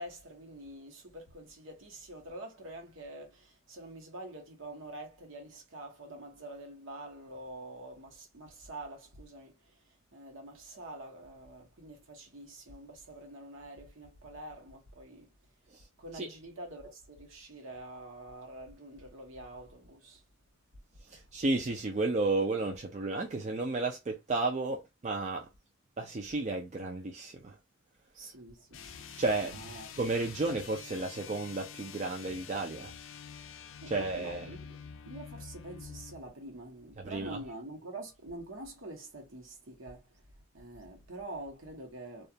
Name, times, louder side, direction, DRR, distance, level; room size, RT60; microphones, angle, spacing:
voice 1, 0.0-9.7 10.1-15.3 16.0-20.2 21.1-21.2 28.1-29.9 33.8-40.1 40.5-42.3, right 1 dB, 70° right, 1.0 m, -46 dB
voice 2, 21.1-25.5 26.0-27.5 29.2-29.6 30.0-32.9 33.9-34.5 37.0-37.4, right 3 dB, 35° right, 0.4 m, -32 dB
sound 1, 28.7-36.2, left 7 dB, 70° left, 0.4 m, -47 dB
2.4 x 2.3 x 2.7 m
head